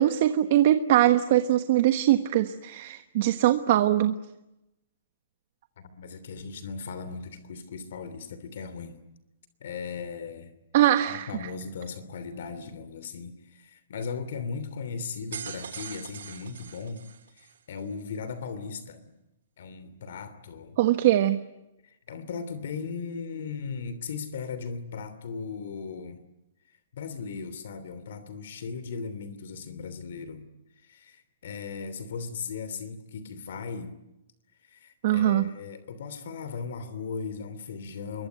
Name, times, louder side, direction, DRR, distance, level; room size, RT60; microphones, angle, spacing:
voice 1, 0.0-4.1 10.7-11.3 20.8-21.4 35.0-35.4, right 13 dB, 45° right, 9 dB, 1.2 m, -22 dB
voice 2, 5.8-9.0 9.6-10.5 11.1-17.0 17.3-19.1 19.6-20.8 21.8-26.2 26.7-30.5 30.8-33.9 34.6-38.3, left 5 dB, 60° left, 13 dB, 3.0 m, -37 dB
sound 1, 15.0-17.6, right 7 dB, 85° right, 3.5 m, -41 dB
27.0 x 23.0 x 9.4 m, 0.90 s
hypercardioid pair, 170°, 0 cm